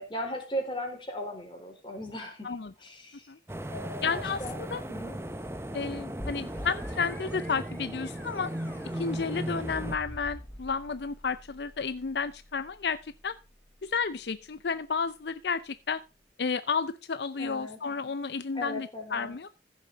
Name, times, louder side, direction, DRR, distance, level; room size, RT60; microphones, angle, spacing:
voice 1, 0.0-2.5 2.8-3.3 3.7-4.6 4.9-5.2 17.4-17.8 18.5-19.3, equal, 25° left, 2 dB, 4.2 m, -37 dB
sound 1, 3.5-10.0, right 1 dB, 15° right, 0.7 m, -37 dB
voice 2, 4.0-4.8 5.7-8.5 9.0-13.3 13.8-16.0 16.4-19.5, left 5 dB, 70° left, 13 dB, 0.6 m, -32 dB
sound 2, 6.2-15.8, equal, 10° left, 1.9 m, -46 dB
15.0 x 7.3 x 4.0 m, 0.29 s
head